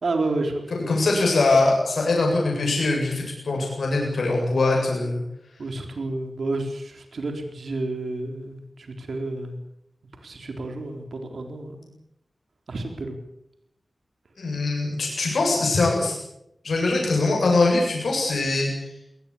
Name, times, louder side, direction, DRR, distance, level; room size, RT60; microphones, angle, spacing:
voice 1, 0.0-0.9 5.6-9.6 10.2-11.9 12.7-13.2, right 2 dB, 85° right, 4 dB, 4.0 m, -30 dB
voice 2, 0.7-5.2 14.4-16.2 16.6-18.9, left 3 dB, 90° left, -1 dB, 7.9 m, -22 dB
22.5 x 19.5 x 8.7 m, 0.80 s
wide cardioid pair, 60°, 0 cm